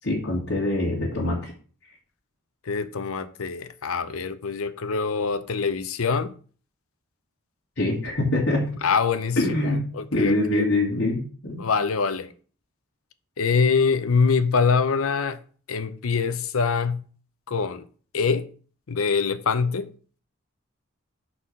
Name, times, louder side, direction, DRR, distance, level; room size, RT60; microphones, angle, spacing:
voice 1, 0.0-1.5 7.8-8.7 9.4-11.6, left 1 dB, 60° left, 1.8 m, -24 dB
voice 2, 2.6-6.3 8.8-10.6 11.6-12.3 13.4-15.4 15.7-17.0 17.5-17.9 18.1-18.5 18.9-19.9, left 5 dB, 85° left, 0.6 m, -24 dB
5.6 x 4.4 x 6.2 m
head